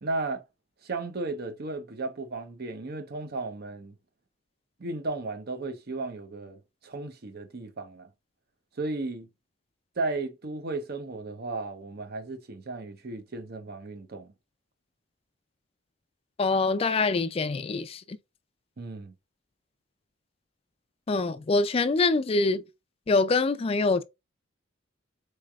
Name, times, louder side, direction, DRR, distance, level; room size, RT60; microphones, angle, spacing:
voice 1, 0.0-0.4 0.8-3.9 4.8-8.1 8.8-9.3 10.0-14.3 18.8-19.1, right 3 dB, 50° right, 0.7 m, -34 dB
voice 2, 16.4-18.2 21.1-22.6 23.1-24.0, left 3 dB, 30° left, 0.3 m, -25 dB
4.3 x 3.2 x 2.3 m
head